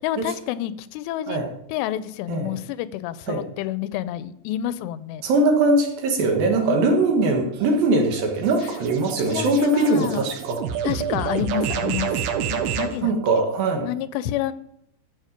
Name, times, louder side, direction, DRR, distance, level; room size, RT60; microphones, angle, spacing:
voice 1, 0.0-1.4 1.7-5.2 6.6-6.8 9.3-10.2 10.8-12.1 12.5-13.1 13.7-14.5, left 12 dB, 85° left, 15 dB, 2.7 m, -28 dB
voice 2, 5.2-10.7 13.0-13.9, right 2 dB, 65° right, 3 dB, 2.8 m, -21 dB
sound 1, 7.5-13.0, right 8 dB, 85° right, 2.9 m, -29 dB
13.0 x 6.9 x 5.1 m, 0.77 s
omnidirectional pair, 4.9 m